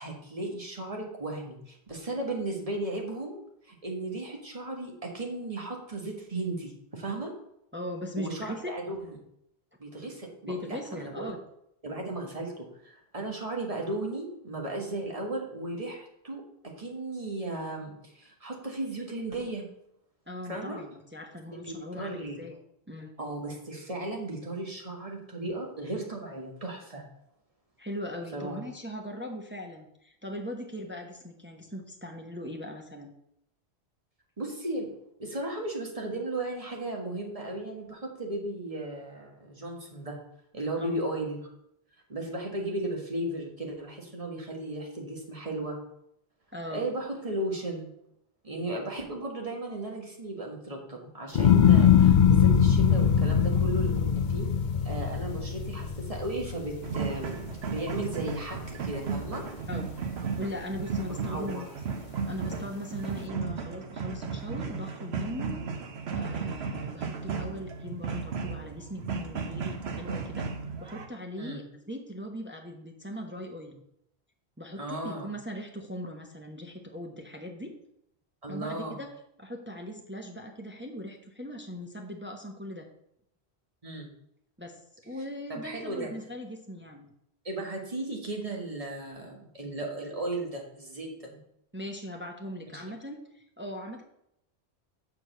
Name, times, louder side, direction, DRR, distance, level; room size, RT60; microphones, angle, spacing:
voice 1, 0.0-7.3 8.2-9.2 9.8-11.3 11.8-16.4 16.8-19.7 20.4-20.8 21.6-22.4 23.2-27.0 28.3-28.6 34.4-34.9 35.2-40.2 40.5-41.4 42.1-45.8 46.7-47.9 48.4-54.5 54.8-59.4 61.2-61.7 71.4-71.6 74.8-75.3 78.4-79.0 83.8-84.1 85.5-86.1 87.4-91.4 92.7-92.8, right 2 dB, 35° right, 0 dB, 1.8 m, -35 dB
voice 2, 7.7-8.7 10.5-11.4 20.3-22.6 22.9-23.1 27.8-33.1 40.8-40.9 46.5-46.9 59.7-59.9 60.4-61.7 62.2-65.7 66.1-70.5 70.8-73.8 74.6-77.8 78.5-79.1 79.4-82.9 84.6-84.8 85.0-87.1 91.7-94.0, equal, 10° right, 2 dB, 0.9 m, -39 dB
sound 1, 51.3-57.7 58.1-58.7, left 8 dB, 55° left, 0.6 m, -22 dB
sound 2, 56.8-71.1, right 5 dB, 75° right, 1.1 m, -35 dB
6.9 x 4.7 x 6.7 m, 0.77 s
omnidirectional pair, 1.1 m